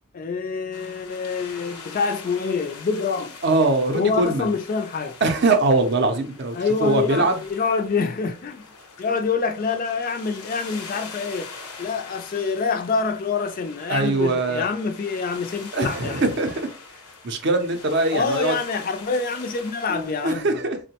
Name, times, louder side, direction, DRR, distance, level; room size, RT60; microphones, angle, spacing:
voice 1, 0.1-3.4 3.9-5.2 6.5-8.6 9.0-11.5 11.8-16.3 18.1-20.6, left 5 dB, 40° left, 0.3 m, -26 dB
sound 1, 0.7-20.3, left 4 dB, 90° left, 0.7 m, -42 dB
voice 2, 3.4-4.5 5.2-6.6 6.8-7.4 13.9-14.7 15.7-16.7 17.2-18.5 19.9-20.8, right 2 dB, 50° right, 0.5 m, -22 dB
3.7 x 2.1 x 2.8 m
head